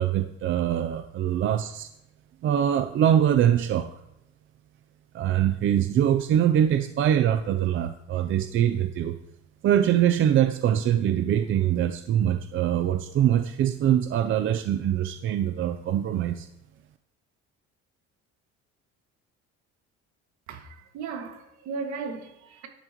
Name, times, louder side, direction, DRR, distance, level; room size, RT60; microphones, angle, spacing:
voice 1, 0.0-1.9 2.4-3.9 5.1-9.2 9.6-16.5, right 10 dB, 45° right, 0.5 m, -23 dB
voice 2, 20.5-22.7, right 5 dB, 70° right, 2.0 m, -36 dB
13.0 x 11.0 x 3.0 m
cardioid pair, 140°, 29 cm